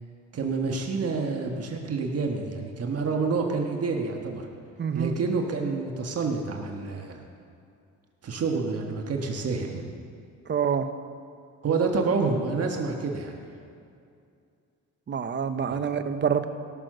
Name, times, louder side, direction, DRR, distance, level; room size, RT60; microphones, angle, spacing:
voice 1, 0.3-4.5 4.9-7.2 8.2-9.8 11.6-13.4 15.7-15.8, right 4 dB, 50° right, 2 dB, 1.5 m, -28 dB
voice 2, 4.8-5.2 10.5-10.9 15.1-16.5, right 7 dB, 35° right, 9 dB, 0.8 m, -26 dB
17.5 x 6.5 x 6.5 m, 2.4 s
cardioid pair, 90°, 30 cm